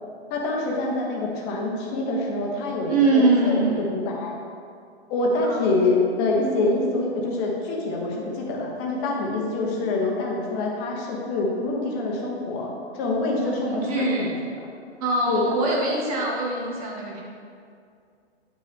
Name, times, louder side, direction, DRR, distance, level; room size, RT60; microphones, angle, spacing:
voice 1, 0.3-3.6 3.9-4.3 5.1-14.3 14.6-14.7 15.3-15.4, left 2 dB, 20° left, -1 dB, 0.9 m, -26 dB
voice 2, 2.9-3.9 5.4-5.7 13.4-14.4 15.0-17.2, right 2 dB, 30° right, -2 dB, 1.0 m, -23 dB
9.6 x 5.8 x 3.5 m, 2.3 s
hypercardioid pair, 155°, 34 cm